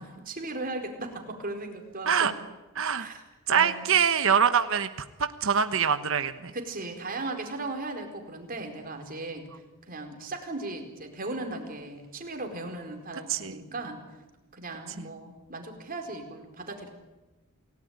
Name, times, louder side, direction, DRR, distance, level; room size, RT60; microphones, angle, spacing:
voice 1, 0.0-2.3 3.0-3.2 3.5-3.9 6.5-9.5 9.9-14.0 14.5-16.9, right 2 dB, 45° right, 4 dB, 4.5 m, -37 dB
voice 2, 2.8-3.1 3.5-4.9 5.2-6.5 13.3-13.6 15.0-15.1, right 7 dB, 65° right, 9 dB, 1.2 m, -24 dB
28.5 x 18.5 x 9.5 m, 1.1 s
head